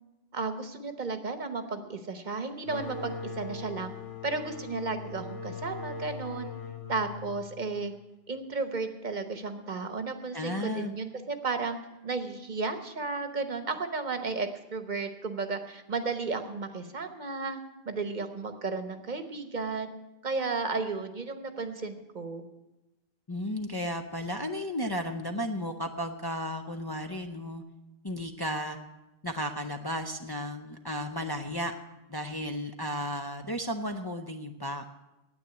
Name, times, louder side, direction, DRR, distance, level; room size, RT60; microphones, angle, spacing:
voice 1, 0.3-4.0 4.2-6.5 6.9-7.9 8.3-11.8 12.0-19.9 20.2-22.4, right 4 dB, 50° right, 9 dB, 1.1 m, -33 dB
sound 1, 2.6-8.1, left 4 dB, 85° left, 2.1 m, -40 dB
voice 2, 10.3-10.9 23.3-27.6 28.0-28.8 29.2-31.7 32.1-34.8, equal, 25° left, 4 dB, 0.6 m, -34 dB
9.8 x 8.8 x 9.4 m, 0.99 s
omnidirectional pair, 1.0 m